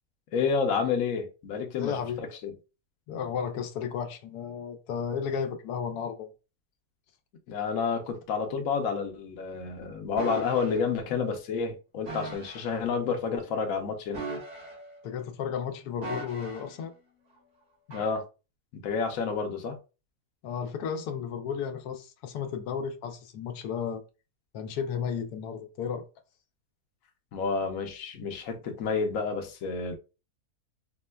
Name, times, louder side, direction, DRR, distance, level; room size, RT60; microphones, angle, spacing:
voice 1, 0.3-2.5 7.5-14.2 17.9-18.2 18.7-19.8 27.3-29.9, left 5 dB, 65° left, 1.0 m, -30 dB
voice 2, 1.8-2.2 3.1-6.3 15.0-16.9 20.4-24.0 24.5-26.0, left 7 dB, 90° left, 1.1 m, -33 dB
sound 1, 10.2-10.8 12.1-12.7 14.1-15.0 16.0-16.8 17.9-18.1, right 2 dB, 85° right, 1.9 m, -38 dB
4.2 x 2.1 x 2.2 m
omnidirectional pair, 1.6 m